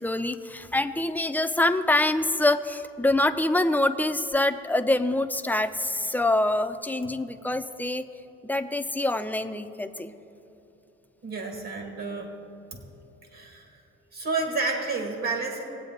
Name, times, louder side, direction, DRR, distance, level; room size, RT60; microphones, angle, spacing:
voice 1, 0.0-8.1 8.4-10.1, left 2 dB, 5° left, 8 dB, 0.5 m, -25 dB
voice 2, 11.2-12.3 12.7-12.8 13.3-13.7 14.1-15.6, right 3 dB, 55° right, 2 dB, 1.9 m, -30 dB
20.0 x 8.2 x 3.8 m, 2.9 s
cardioid pair, 90°, 30 cm